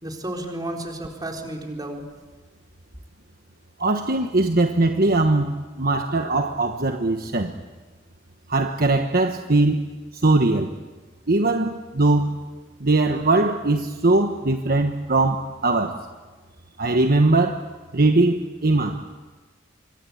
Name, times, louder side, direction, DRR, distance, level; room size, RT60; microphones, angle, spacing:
voice 1, 0.0-2.0, right 1 dB, 20° right, 1 dB, 4.0 m, -32 dB
voice 2, 3.8-7.5 8.5-9.8 10.1-10.7 11.3-12.4 12.8-16.0 16.8-17.6 17.9-19.0, right 2 dB, 50° right, 5 dB, 1.3 m, -20 dB
26.5 x 24.0 x 8.6 m, 1.3 s
head